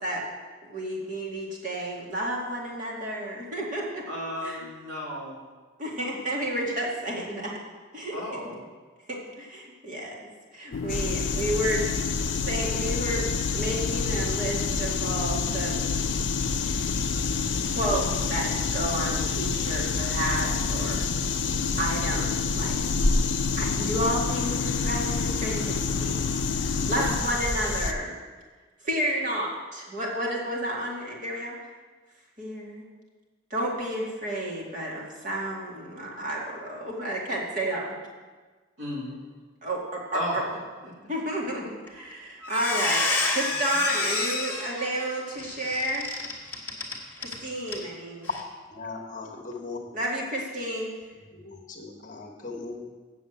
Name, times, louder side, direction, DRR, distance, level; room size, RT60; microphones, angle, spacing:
voice 1, 0.6-4.0 4.4-4.6 5.8-7.5 7.9-8.2 9.1-11.9 12.4-13.3 13.5-15.7 16.7-16.9 17.7-21.1 21.8-22.8 23.6-26.3 26.9-28.2 28.8-31.6 32.4-32.9 33.5-37.9 39.6-40.4 41.1-46.1 47.2-48.3 49.9-50.9, right 1 dB, 40° right, -3 dB, 2.1 m, -31 dB
voice 2, 4.1-5.4 8.1-8.6 21.5-21.8 26.7-27.2 38.8-39.2 40.1-40.4 40.8-40.9 43.7-43.9, equal, 75° right, -6 dB, 3.8 m, -35 dB
sound 1, 10.7-27.2, left 5 dB, 80° left, 0.4 m, -32 dB
sound 2, 10.9-27.9, left 4 dB, 60° left, 0.8 m, -29 dB
Squeak, 41.9-42.1 42.4-47.4 47.7-47.8 48.2-48.4, left 3 dB, 10° left, 1.6 m, -29 dB
voice 3, 48.7-49.8 51.1-52.9, left 3 dB, 40° left, 0 dB, 1.3 m, -39 dB
7.9 x 7.0 x 7.9 m, 1.4 s
head